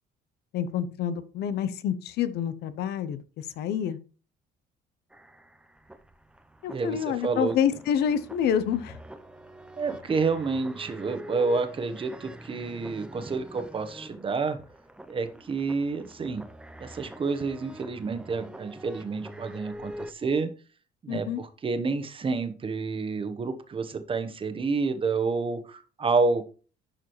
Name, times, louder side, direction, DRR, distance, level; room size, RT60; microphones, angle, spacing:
voice 1, 0.5-4.0 6.6-9.0 21.1-21.4, left 9 dB, 75° left, 14 dB, 0.8 m, -28 dB
sound 1, 5.1-20.1, equal, 5° right, 0.6 m, -45 dB
voice 2, 6.7-7.6 9.8-14.6 15.1-16.4 16.8-20.5 21.0-26.4, right 4 dB, 30° right, 8 dB, 1.1 m, -29 dB
11.0 x 4.9 x 3.2 m, 0.36 s
cardioid pair, 110°, 17 cm